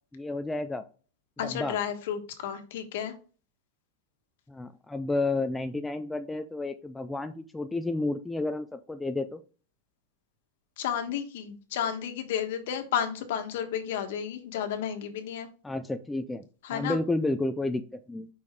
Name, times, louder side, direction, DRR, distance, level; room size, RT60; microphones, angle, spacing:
voice 1, 0.1-0.8 1.4-1.8 4.5-9.4 15.6-16.4 16.7-18.3, left 2 dB, 5° left, 7 dB, 0.3 m, -31 dB
voice 2, 1.4-3.1 10.8-15.5 16.6-17.0, left 9 dB, 60° left, 7 dB, 1.3 m, -32 dB
5.5 x 4.8 x 4.5 m, 0.37 s
supercardioid pair, 175°, 0 cm